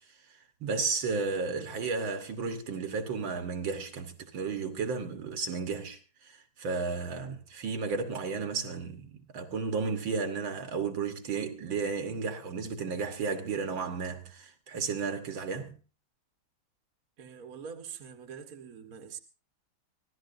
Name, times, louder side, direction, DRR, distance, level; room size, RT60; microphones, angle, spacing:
voice 1, 0.6-15.8, right 4 dB, 70° right, 2.1 m, -33 dB
voice 2, 17.2-19.2, right 7 dB, 45° right, 1.8 m, -44 dB
25.0 x 15.5 x 2.7 m
omnidirectional pair, 2.2 m